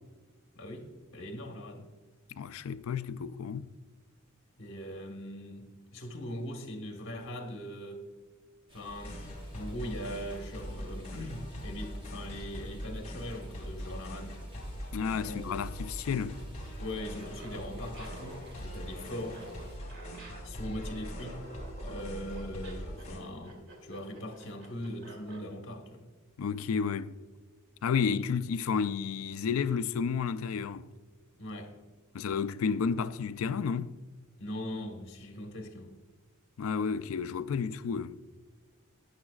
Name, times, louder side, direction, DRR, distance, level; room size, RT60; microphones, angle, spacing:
voice 1, 0.5-1.9 4.6-8.0 8.7-9.2 9.5-14.4 15.2-15.5 16.8-19.5 20.4-21.5 21.8-26.1 31.4-31.7 34.4-35.9, equal, 60° left, 1.4 m, -41 dB
voice 2, 2.4-3.7 14.9-16.4 26.4-27.1 27.8-30.9 32.1-33.9 36.6-38.2, left 6 dB, 75° left, 0.4 m, -31 dB
sound 1, 8.7-19.8, equal, 25° right, 1.2 m, -55 dB
sound 2, 8.9-23.2, equal, 35° left, 2.1 m, -42 dB
Laughter, 17.1-25.5, right 2 dB, 65° right, 2.5 m, -50 dB
13.0 x 9.7 x 2.4 m
head